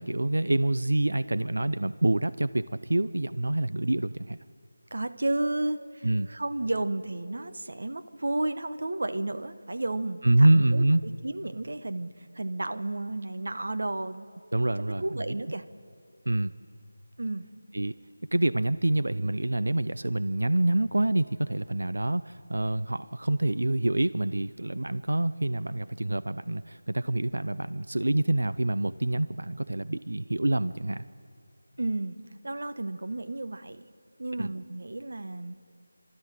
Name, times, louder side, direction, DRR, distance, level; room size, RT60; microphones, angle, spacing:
voice 1, 0.0-4.4 6.0-6.3 10.2-11.0 14.5-15.3 16.3-16.5 17.7-17.9 18.3-31.0 34.4-34.5, right 1 dB, 90° right, 14 dB, 0.5 m, -26 dB
voice 2, 4.9-14.3 15.0-15.6 17.2-17.5 31.8-32.2 32.4-33.8 34.2-35.5, right 2 dB, 55° right, 10 dB, 1.0 m, -32 dB
29.0 x 13.0 x 7.6 m, 2.3 s
figure-of-eight pair, 180°, 0 cm